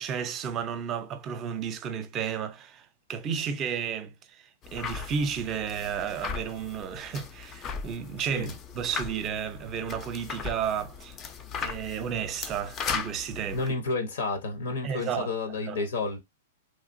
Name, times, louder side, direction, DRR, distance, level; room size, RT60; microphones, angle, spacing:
voice 1, 0.0-4.4 4.7-11.2 11.6-13.7 14.8-15.3 15.6-15.8, right 7 dB, 30° right, 0.6 m, -32 dB
sound 1, 4.6-13.7, left 6 dB, 30° left, 0.5 m, -38 dB
voice 2, 13.5-16.2, left 3 dB, 75° left, 0.9 m, -30 dB
3.2 x 2.4 x 2.6 m
hypercardioid pair, 115°, 0 cm